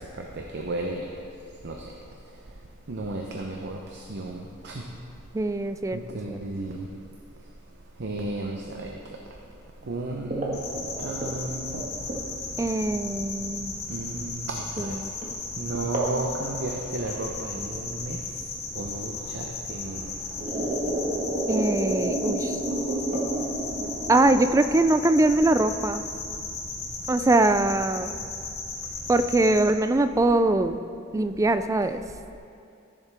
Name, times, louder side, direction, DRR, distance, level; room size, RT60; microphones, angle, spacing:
voice 1, 0.2-1.1 1.6-1.8 2.9-4.8 5.9-6.9 8.0-8.9 9.9-10.6 11.0-11.9 13.9-15.0 15.6-18.2 18.8-20.1, right 2 dB, 55° right, 0 dB, 0.7 m, -33 dB
voice 2, 5.3-6.0 6.3-6.4 12.6-13.7 14.8-15.1 21.5-22.6 24.1-26.0 27.1-28.1 29.1-30.8 31.1-32.0, right 2 dB, 15° right, 10 dB, 0.3 m, -22 dB
sound 1, 10.3-12.7 13.4-13.5 14.8-15.0 15.2-15.3 15.9-16.2 16.4-17.2 18.4-18.5 19.4-19.5 20.0-24.5, right 1 dB, 40° right, 1.6 m, -30 dB
sound 2, 10.5-29.6, left 3 dB, 50° left, 2.6 m, -36 dB
14.0 x 7.3 x 3.5 m, 2.5 s
head